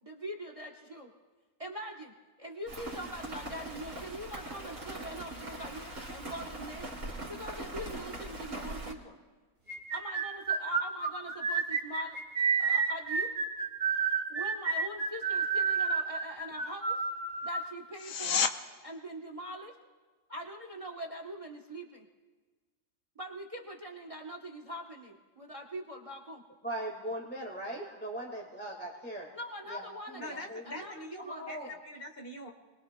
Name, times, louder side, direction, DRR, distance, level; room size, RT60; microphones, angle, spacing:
voice 1, 0.0-1.1 1.6-2.1 2.4-6.9 7.3-9.2 9.9-12.2 12.6-13.3 14.3-17.0 17.4-18.5 18.8-19.8 20.3-22.1 23.1-26.4 29.3-31.8, equal, 25° right, 2 dB, 1.0 m, -43 dB
Rain, 2.7-8.9, right 1 dB, 70° right, 3.2 m, -41 dB
sound 1, 9.7-17.7, right 5 dB, 45° right, 2.0 m, -30 dB
sound 2, 17.9-18.6 29.9-30.0, left 7 dB, 70° left, 1.1 m, -29 dB
voice 2, 26.6-29.4 29.7-30.6 31.2-31.7, right 1 dB, 10° left, -1 dB, 1.6 m, -40 dB
voice 3, 30.2-32.5, left 1 dB, 45° left, 3 dB, 1.8 m, -44 dB
28.0 x 21.5 x 2.2 m, 1.4 s
omnidirectional pair, 1.4 m